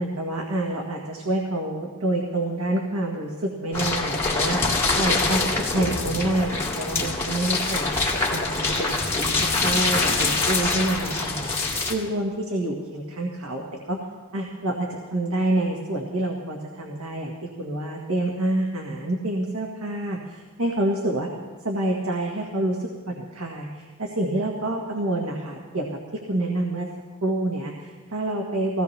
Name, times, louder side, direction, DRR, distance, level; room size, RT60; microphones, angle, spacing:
voice 1, 0.0-4.6 5.0-5.4 5.7-7.9 8.3-9.0 9.4-11.5 11.9-14.0 14.3-21.3 21.6-25.9 26.3-26.9 27.2-28.8, right 1 dB, 80° right, 0 dB, 1.7 m, -27 dB
sound 1, 3.7-11.9, left 3 dB, 15° left, 2.7 m, -24 dB
21.0 x 16.5 x 3.4 m, 1.5 s
head